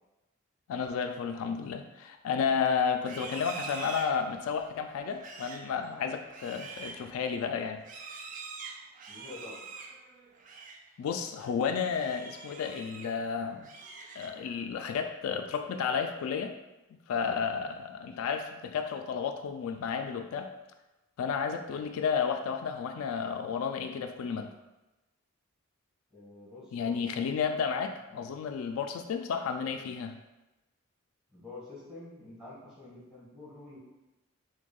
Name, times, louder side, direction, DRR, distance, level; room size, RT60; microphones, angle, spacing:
voice 1, 0.7-7.8 11.0-13.7 14.2-16.5 17.1-20.5 21.2-24.5 26.7-30.2, left 6 dB, 85° left, 6 dB, 0.3 m, -32 dB
Livestock farm animals working animals, 2.9-10.9 11.2-11.5 11.9-13.2 13.5-14.6, right 4 dB, 40° right, 0.3 m, -45 dB
voice 2, 9.1-9.6 26.1-27.4 28.1-28.3 31.3-33.8, left 2 dB, ahead, -8 dB, 1.3 m, -48 dB
6.0 x 2.2 x 2.3 m, 1.0 s
head